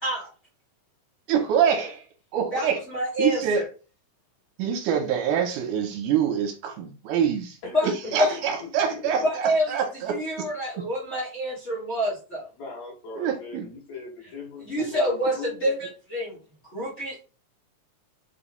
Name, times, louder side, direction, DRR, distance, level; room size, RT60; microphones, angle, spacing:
voice 1, 1.3-2.0 2.3-2.8 3.2-3.6 4.6-7.6 8.1-10.2 13.2-13.7, right 8 dB, 85° right, 2.2 m, -25 dB
voice 2, 2.5-3.7 7.7-7.9 8.1-8.3 9.2-9.8 10.1-12.5 14.6-16.4 16.7-17.2, equal, 35° left, 1.2 m, -27 dB
voice 3, 7.6-9.3 12.6-15.8, left 4 dB, 65° left, 2.7 m, -40 dB
5.3 x 3.0 x 2.3 m
omnidirectional pair, 3.6 m